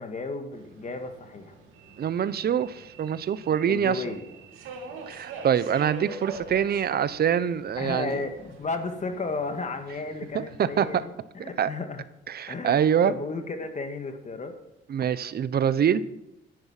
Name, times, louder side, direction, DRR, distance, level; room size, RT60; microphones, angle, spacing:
voice 1, 0.0-1.5 3.7-4.3 7.8-12.0 12.5-12.8 13.0-14.6, left 3 dB, 35° left, 6 dB, 2.0 m, -33 dB
Subway metro underground, 0.5-11.0, right 3 dB, 85° right, 2.6 m, -45 dB
voice 2, 2.0-4.0 5.1-8.2 10.3-11.0 11.6-11.7 12.3-13.1 14.9-16.0, right 8 dB, 50° right, 16 dB, 0.8 m, -25 dB
10.5 x 10.5 x 5.9 m, 0.91 s
cardioid pair, 90°, 20 cm